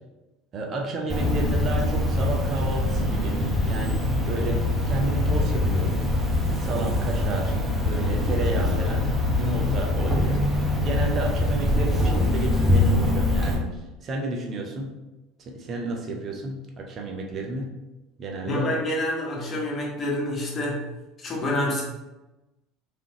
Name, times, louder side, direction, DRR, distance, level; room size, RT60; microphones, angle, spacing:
voice 1, 0.5-4.6 4.9-6.0 6.5-9.1 9.3-15.0 15.5-17.8 18.2-18.7, right 2 dB, 40° right, 1 dB, 0.7 m, -31 dB
Cricket, 1.1-13.5, left 1 dB, 15° right, 1.1 m, -23 dB
voice 2, 18.5-20.9 21.2-21.8, left 1 dB, 35° left, -3 dB, 1.4 m, -27 dB
3.6 x 3.4 x 3.0 m, 1.0 s
hypercardioid pair, 75°, 0 cm